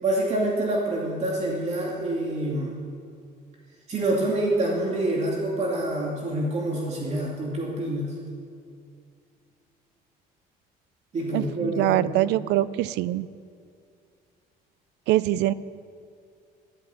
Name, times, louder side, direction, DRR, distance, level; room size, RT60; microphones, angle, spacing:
voice 1, 0.0-2.7 3.9-8.2 11.1-12.0, right 1 dB, 40° right, -3 dB, 2.5 m, -26 dB
voice 2, 11.3-13.3 15.1-15.5, right 15 dB, 85° right, 18 dB, 0.5 m, -23 dB
13.5 x 12.5 x 7.1 m, 2.3 s
cardioid pair, 110°, 17 cm